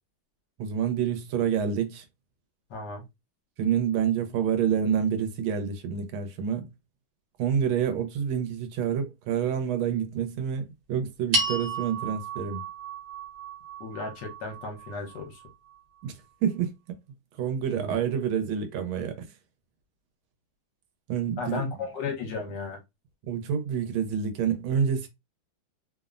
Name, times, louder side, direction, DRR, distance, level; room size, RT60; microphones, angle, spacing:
voice 1, 0.6-2.0 3.6-6.7 7.4-12.6 16.0-17.0 17.4-19.3 21.1-21.6 23.2-25.1, right 8 dB, 85° right, 1.5 m, -28 dB
voice 2, 2.7-3.0 13.8-15.4 17.7-18.0 21.4-22.8, left 4 dB, 65° left, 1.4 m, -34 dB
sound 1, 11.3-15.8, right 3 dB, 65° right, 1.5 m, -33 dB
3.5 x 2.0 x 2.4 m
omnidirectional pair, 2.2 m